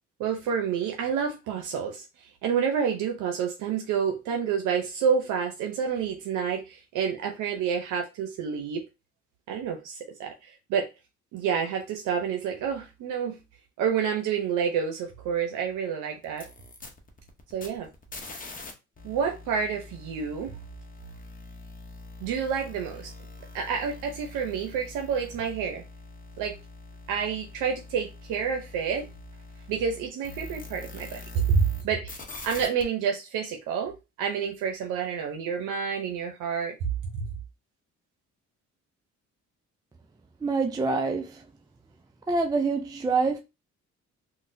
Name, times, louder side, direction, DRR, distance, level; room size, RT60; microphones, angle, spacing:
voice 1, 0.2-8.8 9.5-10.9 11.3-13.4 13.8-16.5 17.5-17.9 19.0-20.6 22.2-23.1 23.5-25.8 26.4-26.5 27.1-29.1 29.7-33.9 34.2-36.8 37.1-37.3, right 7 dB, 90° right, 0.6 m, -29 dB
sound 1, 16.2-18.7 19.0-31.8 32.1-32.8, left 3 dB, 25° left, 0.8 m, -44 dB
voice 2, 40.4-41.5 42.3-43.4, right 4 dB, 15° right, 0.3 m, -26 dB
3.8 x 2.1 x 2.6 m
cardioid pair, 90°, 30 cm